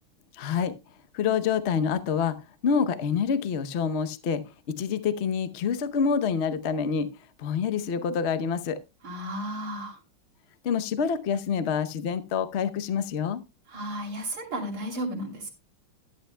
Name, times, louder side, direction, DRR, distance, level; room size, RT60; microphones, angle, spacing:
voice 1, 0.3-0.7 1.1-4.4 4.7-7.1 7.4-8.8 10.6-13.4, left 6 dB, 60° left, 12 dB, 0.6 m, -27 dB
voice 2, 9.0-10.0 13.7-15.5, right 1 dB, 90° right, 1 dB, 4.0 m, -33 dB
14.0 x 11.5 x 2.2 m, 0.25 s
omnidirectional pair, 2.3 m